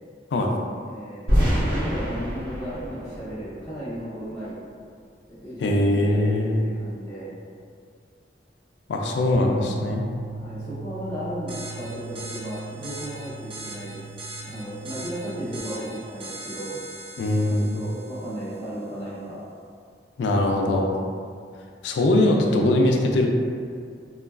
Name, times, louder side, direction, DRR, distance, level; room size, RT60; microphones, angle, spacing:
voice 1, 0.8-4.5 5.3-7.3 10.3-14.0 14.4-16.8 17.4-19.4, right 1 dB, 10° left, -15 dB, 0.7 m, -35 dB
sound 1, 1.3-4.2, equal, 80° right, 0.8 m, -26 dB
voice 2, 5.6-6.7 8.9-10.1 17.2-17.8 20.2-21.0 21.8-23.3, left 1 dB, 70° left, 1 dB, 0.3 m, -21 dB
sound 2, 9.3-15.6, right 3 dB, 65° right, 1.1 m, -38 dB
sound 3, 11.5-18.6, right 1 dB, 30° right, 0.3 m, -41 dB
3.1 x 2.2 x 2.3 m, 2.2 s
head